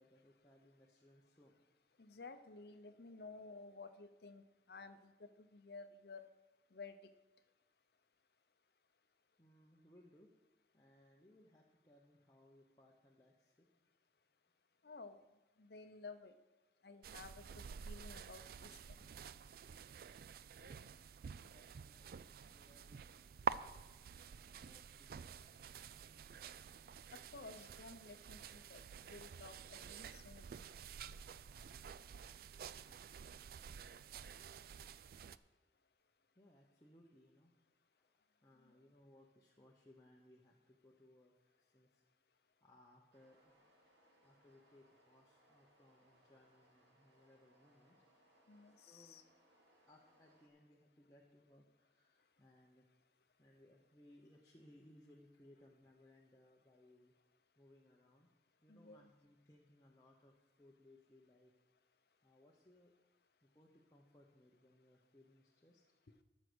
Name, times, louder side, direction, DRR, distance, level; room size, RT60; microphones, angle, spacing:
voice 1, 0.0-1.5 9.4-10.3 10.7-13.9 19.7-20.1 20.4-20.9 21.5-23.0 23.4-23.8 24.1-25.8 36.4-37.5 37.9-42.0 42.3-43.7 44.2-48.2 48.7-49.2 49.9-52.9 53.4-57.1 57.6-58.3 58.6-61.5 62.2-62.9 63.4-65.8, left 1 dB, 20° left, -2 dB, 0.9 m, -67 dB
voice 2, 2.0-6.3 6.7-7.0 14.8-15.2 15.6-16.3 16.8-19.0 27.1-30.5 38.6-38.8 48.5-49.2 58.7-59.1, left 3 dB, 60° left, 9 dB, 0.7 m, -54 dB
sound 1, 17.0-35.4, right 6 dB, 55° right, 0.3 m, -49 dB
sound 2, 43.1-50.5, right 1 dB, 80° right, 2.0 m, -72 dB
13.5 x 6.4 x 6.2 m, 1.1 s
head